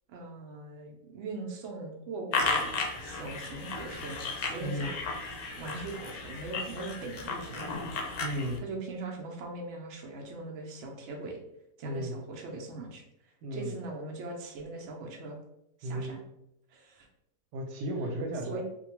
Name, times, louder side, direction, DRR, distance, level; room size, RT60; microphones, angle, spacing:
voice 1, 0.1-2.7 3.0-4.2 4.5-5.0 5.6-7.9 8.6-11.4 11.8-13.0 13.5-15.4 15.8-16.2 16.7-17.1 18.5-18.6, right 3 dB, 65° right, 0 dB, 0.7 m, -40 dB
sound 1, 2.3-8.6, left 4 dB, 70° left, 0.9 m, -34 dB
voice 2, 4.6-4.9 8.2-8.6 11.8-12.2 13.4-13.8 15.8-16.1 17.5-18.6, equal, 80° right, 2 dB, 1.2 m, -34 dB
2.7 x 2.2 x 2.9 m, 0.80 s
omnidirectional pair, 1.8 m